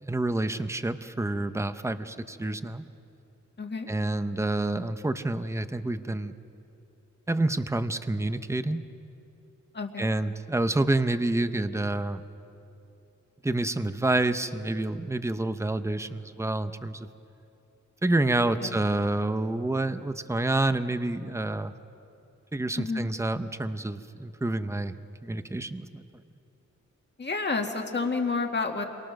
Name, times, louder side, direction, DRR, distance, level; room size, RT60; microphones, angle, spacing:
voice 1, 0.0-2.8 3.9-6.3 7.3-8.8 10.0-12.2 13.4-17.1 18.0-21.7 22.5-24.9 25.2-26.0, right 2 dB, 10° right, 11 dB, 0.7 m, -28 dB
voice 2, 3.6-3.9 9.7-10.2 18.4-18.9 22.8-23.1 27.2-28.9, left 4 dB, 35° left, 3 dB, 1.9 m, -30 dB
30.0 x 23.5 x 6.4 m, 2.8 s
wide cardioid pair, 170°, 30 cm